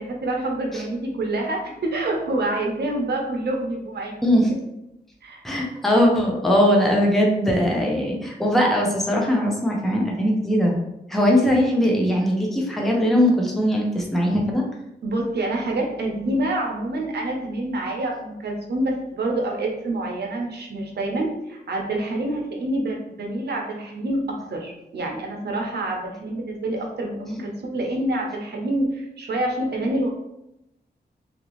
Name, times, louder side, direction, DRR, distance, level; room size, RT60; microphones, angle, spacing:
voice 1, 0.0-4.4 5.2-5.5 15.0-30.1, right 1 dB, 70° right, 0 dB, 0.7 m, -27 dB
voice 2, 5.4-10.8 11.1-14.6, equal, ahead, -1 dB, 0.5 m, -20 dB
2.8 x 2.6 x 3.0 m, 0.86 s
wide cardioid pair, 140°, 17 cm